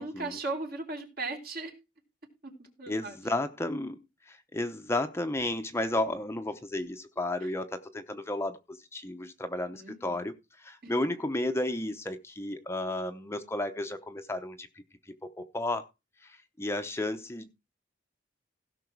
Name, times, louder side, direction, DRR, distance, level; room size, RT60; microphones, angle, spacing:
voice 1, 0.0-1.7 2.4-3.2 9.7-10.3 10.8-10.9, right 3 dB, 55° right, 3 dB, 3.4 m, -37 dB
voice 2, 2.9-4.0 4.3-14.7 15.1-15.8 16.2-17.5, left 1 dB, 15° left, 7 dB, 0.8 m, -33 dB
16.5 x 6.0 x 4.6 m, 0.27 s
head